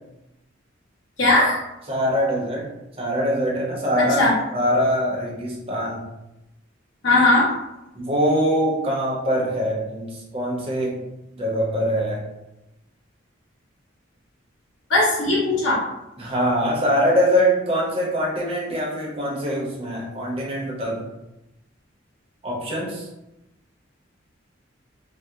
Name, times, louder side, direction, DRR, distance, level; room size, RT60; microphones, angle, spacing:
voice 1, 1.2-1.6 4.2-4.3 7.0-7.5 14.9-15.8, left 2 dB, 70° left, -8 dB, 1.0 m, -18 dB
voice 2, 1.9-2.7 3.0-4.2 4.5-6.0 7.9-11.0 11.3-12.2 16.2-21.1 22.4-23.1, equal, 30° right, -3 dB, 0.8 m, -23 dB
2.7 x 2.1 x 3.5 m, 0.93 s
head